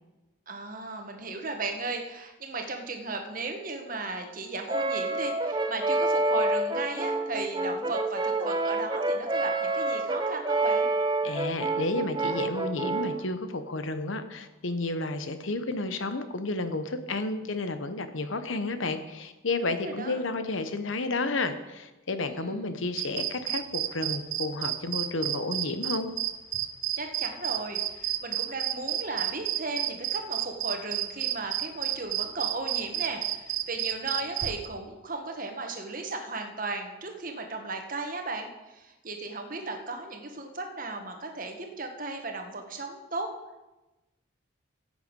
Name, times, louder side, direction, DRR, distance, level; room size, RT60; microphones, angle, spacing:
voice 1, 0.5-10.9 19.6-20.2 22.2-22.6 27.0-43.3, right 3 dB, 45° right, 4 dB, 1.5 m, -36 dB
Brass instrument, 4.7-13.3, right 2 dB, 20° right, 0.7 m, -28 dB
voice 2, 11.2-26.1, left 2 dB, 80° left, 10 dB, 1.0 m, -31 dB
sound 1, 23.0-34.7, right 13 dB, 80° right, 0.8 m, -30 dB
14.5 x 8.3 x 5.4 m, 1.1 s
head